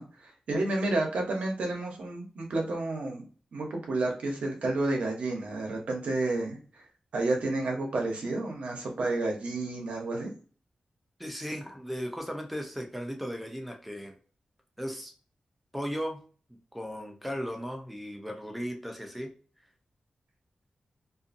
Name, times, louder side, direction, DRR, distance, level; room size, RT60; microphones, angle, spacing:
voice 1, 0.0-3.2 3.5-6.8 7.1-10.3, right 2 dB, 80° right, 1 dB, 0.8 m, -30 dB
voice 2, 11.2-14.1 14.8-15.1 15.7-16.2 16.7-19.3, equal, ahead, 3 dB, 0.5 m, -36 dB
2.5 x 2.5 x 2.5 m, 0.40 s
wide cardioid pair, 155°, 2 cm